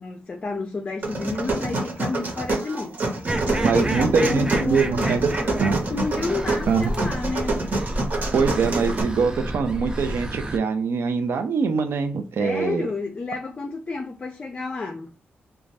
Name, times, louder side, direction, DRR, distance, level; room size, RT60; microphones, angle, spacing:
voice 1, 0.0-7.6 12.4-15.1, left 3 dB, 30° left, 0.4 m, -30 dB
sound 1, 1.0-9.0, right 2 dB, 50° right, 1.1 m, -27 dB
sound 2, 3.3-10.6, right 1 dB, 20° right, 0.5 m, -30 dB
voice 2, 3.6-5.2 5.6-5.8 6.7-6.9 8.3-12.9, right 5 dB, 70° right, 0.6 m, -23 dB
2.6 x 2.3 x 3.2 m
wide cardioid pair, 125°, 4 cm